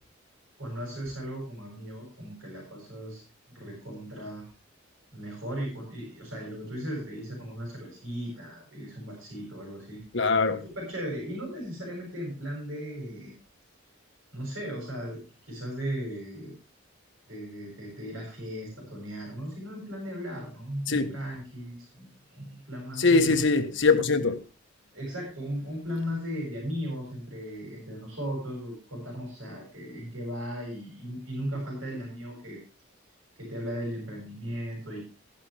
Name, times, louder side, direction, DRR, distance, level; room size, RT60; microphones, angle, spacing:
voice 1, 0.6-3.2 3.5-4.5 5.1-10.0 10.6-13.3 14.3-16.5 17.3-23.4 24.9-32.6 33.4-35.1, equal, 75° right, 7.4 m, -37 dB
voice 2, 10.1-10.6 20.9-21.1 23.0-24.4, left 4 dB, 65° left, 1.3 m, -22 dB
15.0 x 11.0 x 3.3 m
head